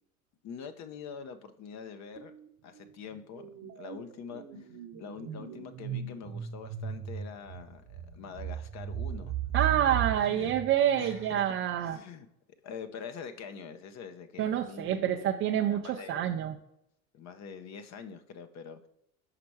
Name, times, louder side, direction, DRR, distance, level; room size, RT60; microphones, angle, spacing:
voice 1, 0.4-2.3 2.6-4.7 5.0-9.3 9.9-10.0 10.3-10.5 11.0-11.5 11.8-12.3 12.6-16.3 17.1-18.9, left 6 dB, 40° left, 9 dB, 0.8 m, -45 dB
sound 1, 2.2-2.5 2.8-11.5, right 10 dB, 45° right, 1.0 m, -37 dB
voice 2, 9.5-12.0 14.4-16.5, right 10 dB, 30° right, 2 dB, 0.4 m, -27 dB
5.8 x 5.1 x 4.6 m, 0.76 s
hypercardioid pair, 85°, 45 cm